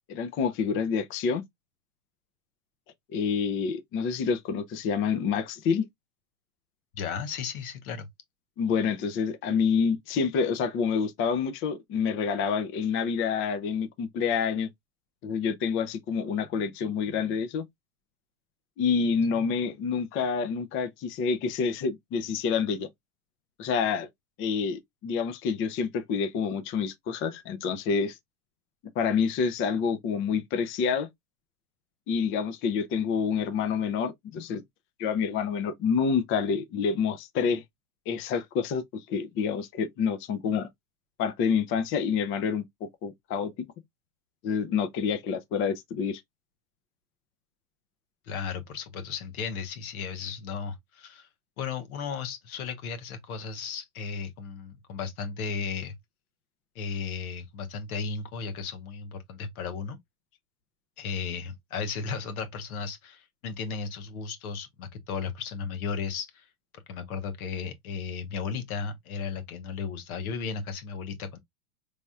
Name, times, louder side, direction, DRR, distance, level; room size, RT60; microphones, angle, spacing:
voice 1, 0.1-1.4 3.1-5.9 8.6-14.7 15.2-17.6 18.8-22.9 23.6-24.1 24.4-28.2 29.0-31.1 32.1-34.6 35.0-37.6 38.1-40.7 41.2-42.6 43.0-43.5 44.4-46.2, left 6 dB, 30° left, 0.6 m, -28 dB
voice 2, 6.9-8.1 48.3-51.3 51.6-56.0 56.7-60.0 61.0-66.5 66.9-71.4, left 5 dB, 75° left, 1.1 m, -35 dB
4.0 x 3.4 x 2.3 m
hypercardioid pair, 120°, 43 cm